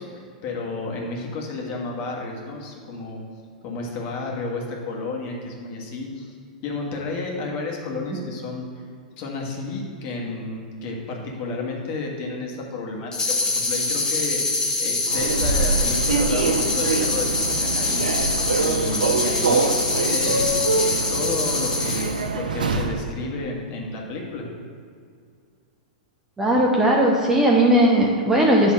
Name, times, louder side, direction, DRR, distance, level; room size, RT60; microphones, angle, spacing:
voice 1, 0.0-3.2 3.6-6.3 6.6-8.7 9.2-14.4 14.8-18.1 18.6-20.5 20.7-24.4, left 3 dB, 45° left, -1 dB, 1.6 m, -31 dB
sound 1, 13.1-22.3, left 3 dB, 15° left, 0.9 m, -25 dB
Human voice / Subway metro underground, 15.1-23.0, right 3 dB, 80° right, 0.6 m, -24 dB
voice 2, 26.4-28.7, right 1 dB, 10° right, -2 dB, 0.8 m, -18 dB
8.5 x 3.4 x 6.0 m, 2.2 s
hypercardioid pair, 110°, 4 cm